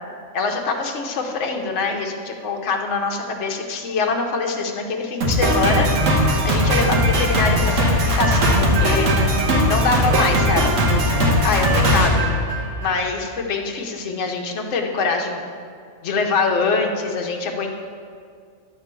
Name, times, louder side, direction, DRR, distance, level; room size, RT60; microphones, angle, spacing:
voice 1, 0.3-5.9 6.4-8.5 8.8-9.1 9.7-10.7 11.4-12.3 12.8-15.4 16.0-17.7, left 4 dB, 70° left, 2 dB, 1.1 m, -24 dB
Drum kit, 5.2-13.0, equal, 85° right, 1.5 m, -19 dB
11.0 x 3.7 x 6.7 m, 2.2 s
omnidirectional pair, 1.3 m